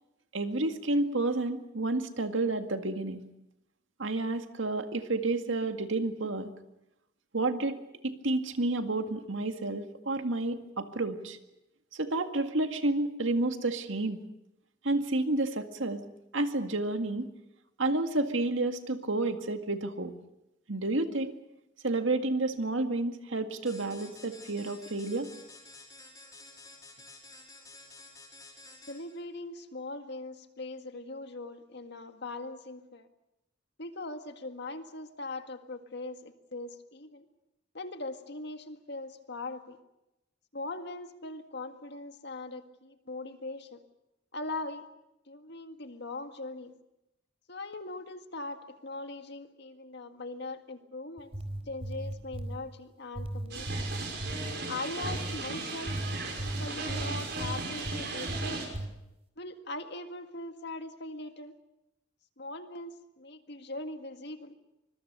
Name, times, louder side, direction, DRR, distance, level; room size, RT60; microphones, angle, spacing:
voice 1, 0.3-3.2 4.0-6.5 7.3-7.8 8.0-11.4 11.9-14.2 14.8-16.0 16.3-17.3 17.8-20.1 20.7-21.4 21.8-25.3, right 2 dB, 80° right, 7 dB, 2.0 m, -30 dB
sound 1, 23.7-29.2, left 3 dB, 20° left, 5.5 m, -51 dB
voice 2, 28.9-33.1 33.8-37.3 37.7-39.8 40.5-43.8 44.3-44.8 45.3-46.7 47.5-51.3 51.7-53.9 54.7-56.0 56.3-58.7 59.4-61.5 62.4-64.5, left 2 dB, 60° left, 7 dB, 1.9 m, -40 dB
Bass Hits with Crackle, 51.2-52.6 53.2-54.6 55.0-55.4 55.9-58.0 58.3-58.9, right 1 dB, 30° right, 3.9 m, -36 dB
sound 2, 53.5-58.7, right 3 dB, 60° right, 5.8 m, -37 dB
25.0 x 22.0 x 6.8 m, 0.90 s
head